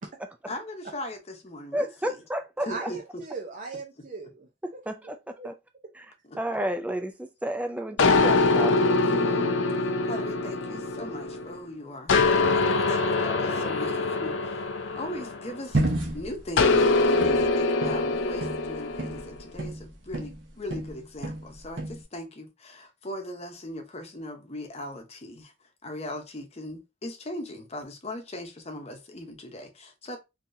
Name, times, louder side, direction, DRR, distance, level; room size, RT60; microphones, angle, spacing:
voice 1, 0.5-2.2 2.7-3.2 6.2-6.4 9.0-15.8 16.1-25.5 25.8-30.2, left 1 dB, 35° left, 0.8 m, -39 dB
voice 2, 1.7-2.9 4.9-5.2 5.4-5.5 5.9-6.1 6.4-9.0, right 1 dB, 10° right, 0.3 m, -31 dB
voice 3, 2.6-4.5 4.7-4.8 5.4-5.5, right 4 dB, 45° right, 0.6 m, -38 dB
sound 1, 8.0-11.6 12.1-15.8 16.6-19.2, left 3 dB, 85° left, 0.5 m, -24 dB
sound 2, 15.7-20.4 20.7-22.0, right 2 dB, 75° right, 1.0 m, -31 dB
3.9 x 2.8 x 2.6 m
head